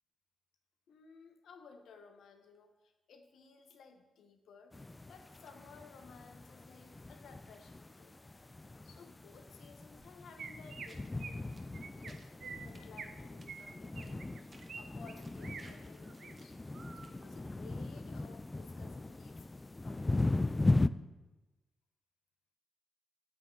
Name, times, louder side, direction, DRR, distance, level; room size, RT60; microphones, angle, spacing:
voice 1, 0.9-4.8 5.1-8.2 8.8-11.4 11.9-16.6 16.9-19.5 19.8-20.7, left 5 dB, 75° left, 6 dB, 1.1 m, -57 dB
sound 1, 4.7-20.9, left 2 dB, 20° left, 0.3 m, -38 dB
Chirp tweet, 10.0-10.1 10.4-10.9 11.2-11.4 11.7-12.1 12.4-13.1 13.5-14.8 15.1-15.6 16.0-16.3 16.7-17.1, right 5 dB, 60° right, 0.7 m, -47 dB
sound 2, 10.8-11.1 11.4-12.3 12.7-12.9 13.2-13.4 14.0-14.2 14.5-14.8 15.2-17.3, right 2 dB, 35° right, 1.3 m, -60 dB
8.3 x 7.9 x 3.9 m, 1.1 s
cardioid pair, 70°, 0 cm